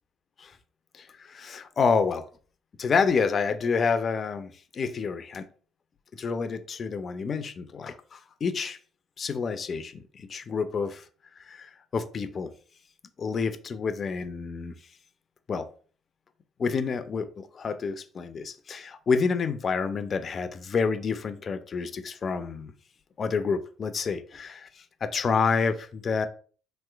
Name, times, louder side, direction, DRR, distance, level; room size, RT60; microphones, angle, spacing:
voice 1, 0.9-2.3 2.8-5.5 6.2-8.8 9.2-11.0 11.4-12.5 13.2-14.7 15.5-15.7 16.6-22.7 23.2-24.7 25.0-26.3, left 5 dB, 45° left, 10 dB, 0.4 m, -28 dB
3.0 x 3.0 x 2.3 m, 0.41 s
supercardioid pair, 80°, 0 cm